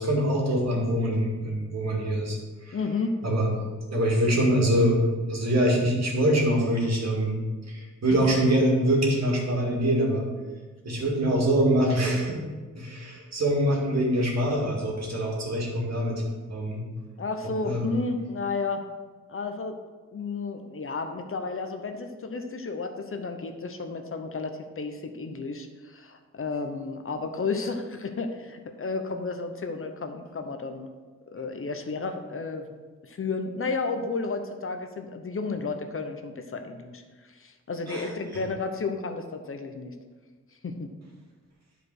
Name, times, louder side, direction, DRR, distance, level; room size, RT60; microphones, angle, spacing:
voice 1, 0.0-2.4 2.7-2.8 3.2-3.5 3.9-5.0 5.3-7.3 7.7-10.2 10.8-12.4 12.8-16.2 16.5-16.8 17.6-17.8 37.9-38.1, right 1 dB, 60° right, -2 dB, 2.3 m, -24 dB
voice 2, 2.7-3.2 17.2-18.8 19.3-19.8 20.1-30.9 31.3-32.7 33.0-37.0 37.3-39.9 40.6-40.9, left 4 dB, 45° left, 6 dB, 0.8 m, -32 dB
10.5 x 5.0 x 4.8 m, 1.3 s
wide cardioid pair, 130°, 29 cm